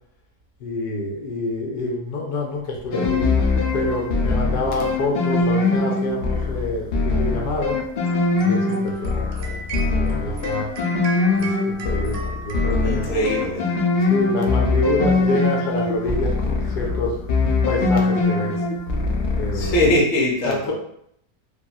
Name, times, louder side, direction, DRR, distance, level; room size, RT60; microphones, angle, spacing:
voice 1, 0.6-3.2 3.7-7.8 8.4-10.7 11.4-13.1 14.0-17.2 17.6-18.6 19.3-19.8 20.5-20.7, left 2 dB, 85° left, 0 dB, 1.2 m, -27 dB
sound 1, 2.9-19.9, left 3 dB, 70° left, 0.6 m, -22 dB
sound 2, 8.0-13.9, right 2 dB, 75° right, 1.0 m, -37 dB
voice 2, 12.8-13.7 19.5-20.7, left 1 dB, 55° left, -2 dB, 1.0 m, -21 dB
2.9 x 2.6 x 2.3 m, 0.71 s
omnidirectional pair, 1.6 m